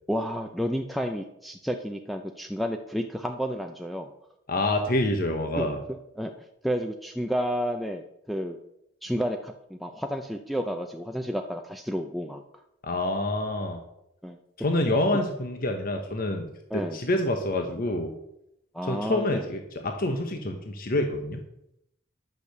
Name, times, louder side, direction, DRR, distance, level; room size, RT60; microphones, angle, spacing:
voice 1, 0.1-4.1 5.6-5.7 6.2-6.3 6.6-8.6 9.0-12.4 14.2-14.4 16.7-17.0 18.7-19.4, equal, ahead, 3 dB, 0.6 m, -31 dB
voice 2, 4.5-5.8 12.8-13.8 14.6-16.5 16.7-18.1 18.8-21.4, left 1 dB, 50° left, 4 dB, 1.1 m, -27 dB
11.0 x 6.7 x 6.6 m, 0.82 s
head